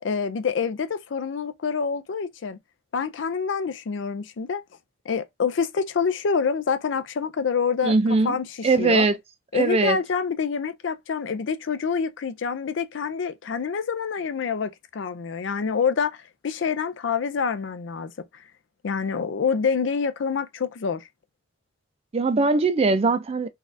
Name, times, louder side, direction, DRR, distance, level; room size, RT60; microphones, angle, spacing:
voice 1, 0.0-2.6 2.9-4.6 5.1-7.9 8.2-9.1 9.5-18.1 18.8-21.1, left 6 dB, 65° left, 0.4 m, -26 dB
voice 2, 7.8-8.3 8.6-9.2 9.5-10.0 22.1-23.5, right 3 dB, 30° right, 0.4 m, -21 dB
4.0 x 2.4 x 2.6 m
head